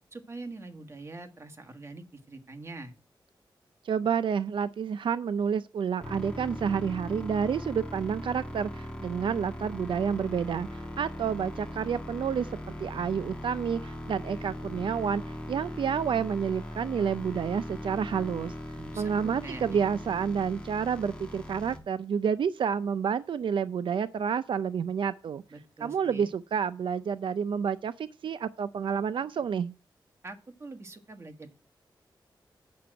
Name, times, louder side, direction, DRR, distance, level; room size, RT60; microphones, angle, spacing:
voice 1, 0.1-2.9 18.8-19.8 25.5-26.3 30.2-31.5, right 3 dB, 30° right, 1.5 m, -44 dB
voice 2, 3.8-12.5 12.8-15.2 15.5-18.5 19.0-25.4 25.8-29.7, right 7 dB, 80° right, 0.4 m, -29 dB
sound 1, 6.0-21.8, left 1 dB, 10° left, 1.7 m, -39 dB
8.5 x 6.1 x 7.6 m
wide cardioid pair, 120°, 8 cm